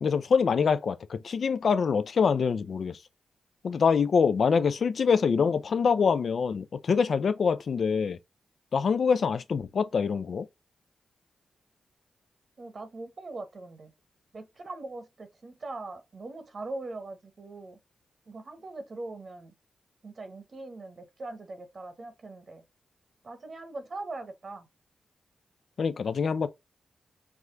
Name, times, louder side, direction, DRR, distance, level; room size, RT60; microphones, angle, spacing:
voice 1, 0.0-3.0 3.6-8.2 8.7-10.5 25.8-26.5, left 6 dB, 65° left, 0.4 m, -25 dB
voice 2, 12.6-13.9 14.3-17.8 18.3-19.5 20.0-22.6 23.2-24.7, right 2 dB, 55° right, 1.0 m, -41 dB
4.7 x 2.2 x 3.7 m
supercardioid pair, 45°, 0 cm